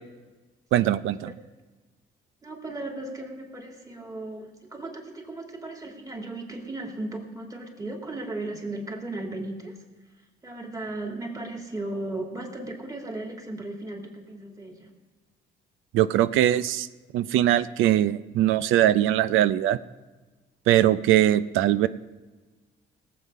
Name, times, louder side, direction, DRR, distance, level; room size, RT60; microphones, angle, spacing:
voice 1, 0.7-1.3 15.9-16.9 17.1-19.8 20.7-21.9, right 12 dB, 90° right, 15 dB, 0.5 m, -21 dB
voice 2, 2.4-9.8 10.4-14.9, right 2 dB, 15° right, 1 dB, 2.6 m, -36 dB
18.5 x 7.7 x 5.5 m, 1.3 s
cardioid pair, 90°, 20 cm